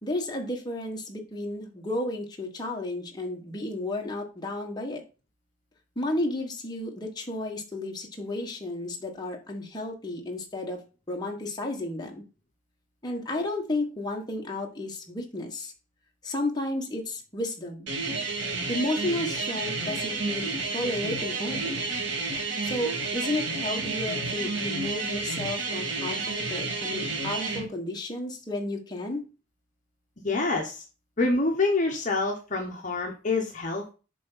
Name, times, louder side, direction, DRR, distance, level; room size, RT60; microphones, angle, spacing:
voice 1, 0.0-5.0 5.9-10.8 11.1-12.2 13.0-15.7 16.2-17.9 18.7-21.9 22.6-29.2, left 1 dB, 20° left, 1 dB, 1.4 m, -32 dB
sound 1, 17.9-27.6, right 3 dB, 70° right, 1.8 m, -31 dB
voice 2, 30.2-30.8 31.2-33.9, left 3 dB, 40° left, 1 dB, 1.1 m, -26 dB
7.6 x 3.5 x 5.7 m, 0.32 s
head